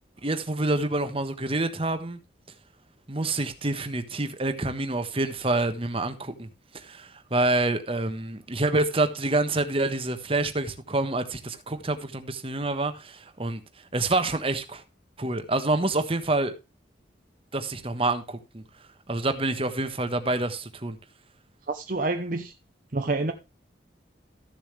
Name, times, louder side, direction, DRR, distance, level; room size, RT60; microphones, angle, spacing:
voice 1, 0.2-2.2 3.1-6.5 6.7-13.6 13.9-14.8 15.2-16.5 17.5-18.6 19.1-21.0, right 2 dB, 30° right, 1.3 m, -27 dB
voice 2, 21.7-22.5 22.9-23.3, right 2 dB, 50° right, 0.8 m, -28 dB
14.5 x 7.1 x 3.3 m
head